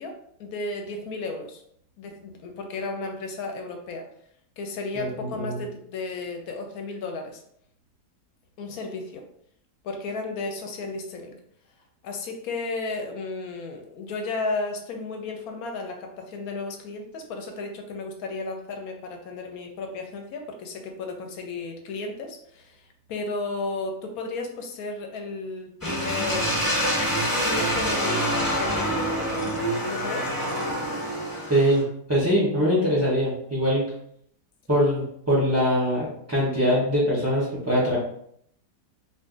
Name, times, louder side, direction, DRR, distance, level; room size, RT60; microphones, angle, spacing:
voice 1, 0.0-1.6 2.0-4.1 4.6-7.4 8.6-9.3 9.8-11.4 12.0-26.7 27.4-29.3 29.9-30.3, left 3 dB, 70° left, 3 dB, 1.0 m, -34 dB
voice 2, 5.0-5.6 31.5-31.8 32.1-33.8 34.7-38.0, equal, 25° right, -8 dB, 0.3 m, -22 dB
sound 1, 25.8-31.8, equal, 15° left, 1.1 m, -26 dB
2.5 x 2.5 x 3.7 m, 0.69 s
omnidirectional pair, 1.8 m